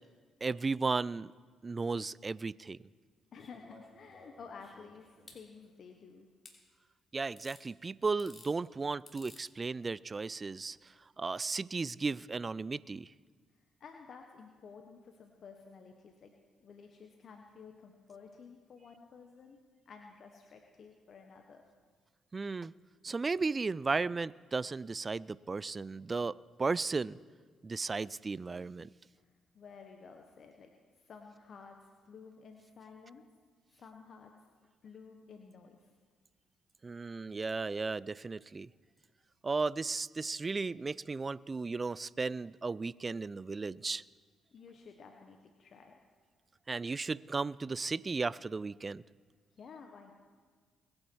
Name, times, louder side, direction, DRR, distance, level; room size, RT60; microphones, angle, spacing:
voice 1, 0.4-1.3 1.6-2.8 7.1-13.1 22.3-22.7 23.0-26.3 26.6-27.2 27.6-28.9 36.8-38.7 39.4-44.0 46.7-49.0, right 4 dB, 35° right, 21 dB, 0.4 m, -35 dB
voice 2, 3.3-6.3 13.5-16.3 16.6-19.6 19.9-21.6 29.1-29.3 29.5-30.7 31.0-33.2 33.7-34.3 34.8-35.9 44.5-45.9 49.5-50.1, left 5 dB, 60° left, 3 dB, 1.1 m, -53 dB
sound 1, 3.4-5.4 6.4-6.6 7.4-7.6 8.1-8.5 9.1-9.4 10.7-10.8, left 2 dB, 30° left, 3.1 m, -56 dB
21.5 x 8.9 x 4.6 m, 1.5 s
supercardioid pair, 55°, 0 cm